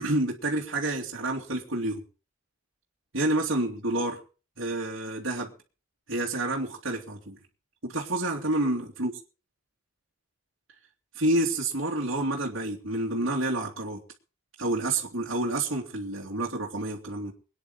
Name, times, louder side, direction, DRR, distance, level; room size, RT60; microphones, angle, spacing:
voice 1, 0.0-2.0 3.1-4.2 4.6-5.5 6.1-7.4 7.8-9.1 11.1-14.0 14.6-17.3, right 2 dB, 65° right, -4 dB, 2.6 m, -29 dB
24.0 x 10.0 x 4.1 m, 0.36 s
head